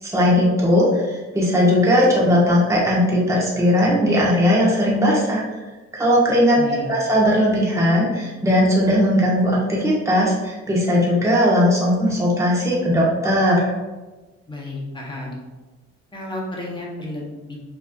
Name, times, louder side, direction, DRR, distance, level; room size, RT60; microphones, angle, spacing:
voice 1, 0.0-5.6 5.9-13.7, equal, 10° right, -5 dB, 1.4 m, -18 dB
voice 2, 6.6-6.9 14.5-15.4 16.1-17.6, left 1 dB, 15° left, -4 dB, 1.5 m, -32 dB
5.6 x 3.3 x 2.6 m, 1.2 s
cardioid pair, 90°, 30 cm